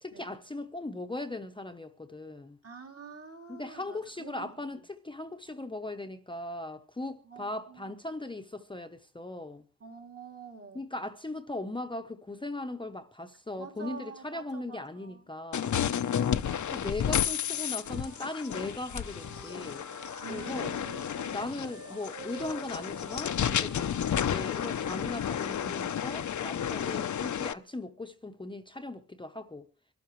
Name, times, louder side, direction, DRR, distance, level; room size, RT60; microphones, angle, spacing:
voice 1, 0.0-2.6 3.5-9.6 10.7-15.8 16.7-19.9 20.3-20.7 21.3-23.9 24.2-29.7, left 2 dB, 15° left, 0.8 m, -38 dB
voice 2, 2.6-4.5 7.2-7.9 9.8-10.9 13.6-15.2 16.2-17.1 20.2-21.6, right 5 dB, 50° right, 2.8 m, -47 dB
sound 1, 15.5-27.5, left 9 dB, 70° left, 0.7 m, -32 dB
Wind instrument woodwind instrument, 17.6-21.4 21.7-25.5, right 6 dB, 75° right, 2.4 m, -50 dB
24.5 x 12.5 x 3.1 m
wide cardioid pair, 125°, 31 cm